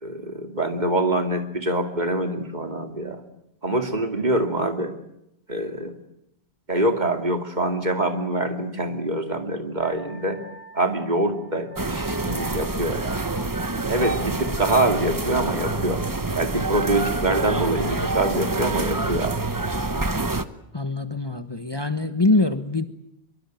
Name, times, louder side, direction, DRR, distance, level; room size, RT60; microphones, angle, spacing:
voice 1, 0.0-3.2 3.6-4.9 5.5-5.9 6.7-10.4 10.7-13.2 13.8-16.0 16.4-19.4, right 1 dB, 45° right, 5 dB, 2.7 m, -25 dB
Wind instrument woodwind instrument, 9.8-15.5, right 3 dB, 65° right, 2.8 m, -47 dB
sound 1, 11.8-20.4, right 2 dB, 20° right, 1.0 m, -26 dB
voice 2, 20.7-22.9, left 2 dB, 25° left, 8 dB, 1.2 m, -23 dB
23.5 x 23.0 x 9.2 m, 0.82 s
omnidirectional pair, 1.1 m